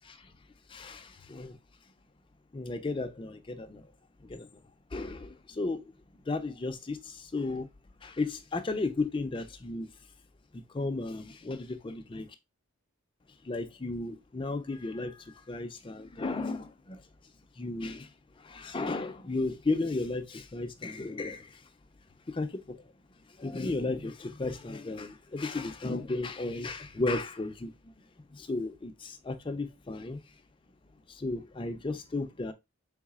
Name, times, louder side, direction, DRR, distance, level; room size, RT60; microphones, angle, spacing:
voice 1, 0.7-1.6 2.5-3.9 4.2-4.5 4.9-5.9 6.3-7.7 8.0-9.9 10.5-12.3 13.4-17.0 17.6-18.1 18.4-21.6 22.3-22.8 23.4-27.9 28.3-30.2 31.1-32.5, left 3 dB, 25° left, 0.4 m, -34 dB
4.0 x 3.5 x 2.3 m
head